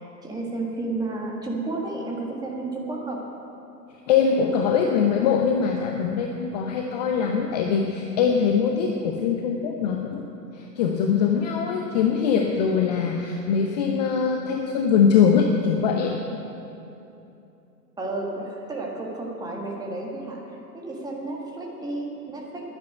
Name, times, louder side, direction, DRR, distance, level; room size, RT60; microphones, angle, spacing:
voice 1, 0.2-3.2 18.0-20.4 20.7-22.7, right 2 dB, 10° right, -1 dB, 1.6 m, -32 dB
voice 2, 4.1-10.2 10.5-16.2, left 6 dB, 25° left, 2 dB, 0.7 m, -22 dB
10.5 x 10.5 x 9.0 m, 2.8 s
figure-of-eight pair, 115°, 50 cm